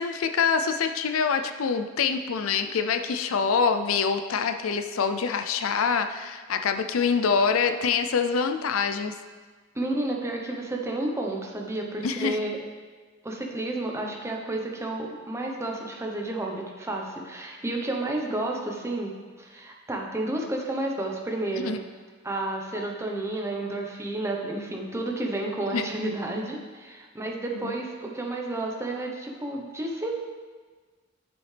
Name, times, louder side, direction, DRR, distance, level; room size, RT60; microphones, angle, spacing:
voice 1, 0.0-9.2 12.0-12.4 21.6-21.8 25.7-25.8 27.5-27.7, left 6 dB, 80° left, 8 dB, 0.5 m, -25 dB
voice 2, 9.7-12.6 13.2-21.8 22.2-30.2, right 2 dB, 15° right, 0 dB, 0.9 m, -31 dB
9.2 x 7.0 x 3.4 m, 1.4 s
head